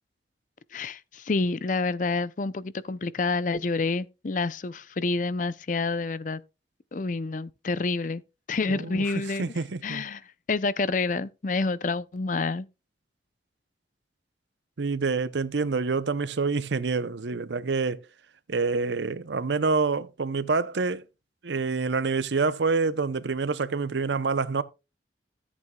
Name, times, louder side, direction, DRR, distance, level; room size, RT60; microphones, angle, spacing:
voice 1, 0.7-6.4 6.9-8.2 8.5-9.5 9.8-10.2 10.5-12.7, left 3 dB, 45° left, 0.5 m, -28 dB
voice 2, 8.7-9.0 9.4-10.0 14.8-18.0 18.5-21.0 21.4-24.6, right 4 dB, 80° right, 0.7 m, -27 dB
13.5 x 8.4 x 2.3 m
head